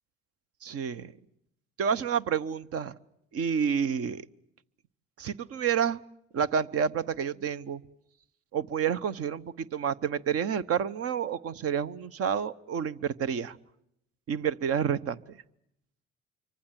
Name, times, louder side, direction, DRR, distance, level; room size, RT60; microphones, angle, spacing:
voice 1, 0.6-1.1 1.8-2.9 3.3-4.3 5.2-6.0 6.3-7.8 8.5-13.6 14.3-15.4, right 7 dB, 55° right, 16 dB, 1.0 m, -29 dB
25.5 x 24.5 x 7.5 m, 0.78 s
hypercardioid pair, 60°, 29 cm